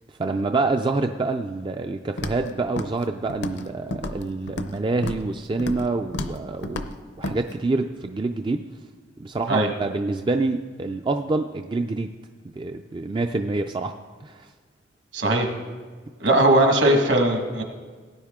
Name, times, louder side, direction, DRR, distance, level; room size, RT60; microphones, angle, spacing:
voice 1, 0.2-6.9 7.2-8.6 9.2-12.1 12.6-13.9 14.2-14.5, right 3 dB, 25° right, 6 dB, 0.3 m, -26 dB
Walk footsteps, 2.2-2.5 2.8-3.0 3.3-3.7 3.9-4.7 5.0-5.3 5.6-5.9 6.1-6.4 6.6-6.9 7.2-7.4, left 1 dB, 65° left, 0.7 m, -31 dB
voice 2, 15.1-15.5 16.2-17.6, right 1 dB, 65° right, 4 dB, 1.5 m, -19 dB
17.5 x 9.4 x 3.6 m, 1.5 s
head